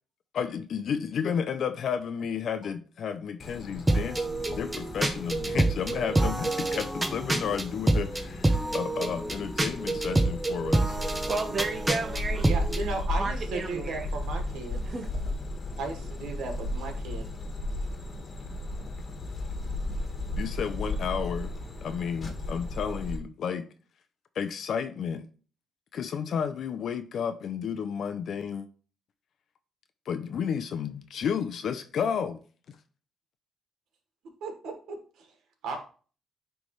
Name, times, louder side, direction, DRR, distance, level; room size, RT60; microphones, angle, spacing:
voice 1, 0.3-11.0 20.4-21.5 21.8-23.7 24.4-25.2 25.9-28.7 30.1-32.4, left 7 dB, 65° left, 0.6 m, -32 dB
sound 1, 3.4-23.2, left 1 dB, 40° left, 1.5 m, -35 dB
sound 2, 3.9-12.8, right 2 dB, 15° right, 0.8 m, -27 dB
voice 2, 11.3-12.5 13.2-14.1 14.9-15.1, right 3 dB, 35° right, 1.0 m, -32 dB
voice 3, 12.4-14.8 15.8-17.3 34.4-35.3 35.6-35.8, right 3 dB, 80° right, 1.5 m, -35 dB
9.3 x 3.4 x 3.2 m
cardioid pair, 90°, 0 cm